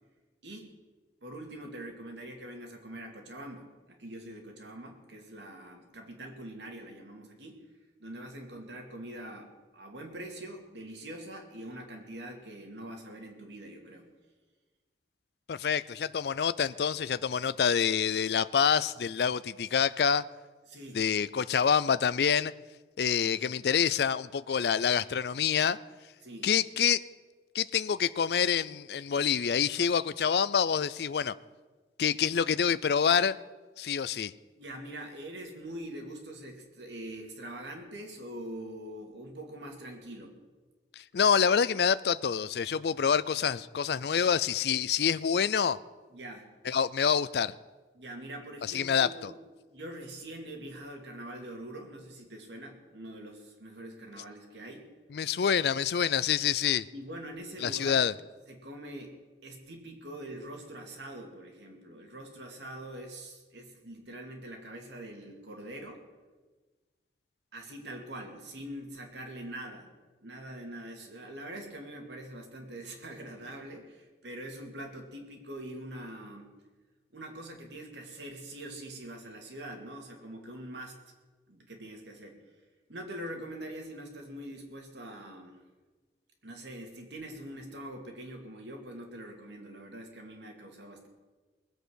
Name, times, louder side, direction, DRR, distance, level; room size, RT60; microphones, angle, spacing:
voice 1, 0.4-0.7 1.2-7.6 8.0-14.1 20.7-21.0 26.2-26.5 34.6-40.3 46.1-46.5 47.9-49.4 49.7-54.9 56.9-58.1 58.5-59.2 59.4-66.0 67.5-69.9 70.2-76.5 77.1-81.0 81.5-82.4 82.9-85.6 86.4-91.1, right 1 dB, 85° right, 2.5 m, -44 dB
voice 2, 15.5-20.2 20.9-22.5 23.0-25.8 26.4-27.0 27.5-31.3 32.0-33.4 33.8-34.3 41.0-45.8 46.7-47.5 48.7-49.3 55.1-56.9 57.6-58.1, left 7 dB, 65° left, 0.4 m, -27 dB
20.5 x 8.0 x 6.4 m
head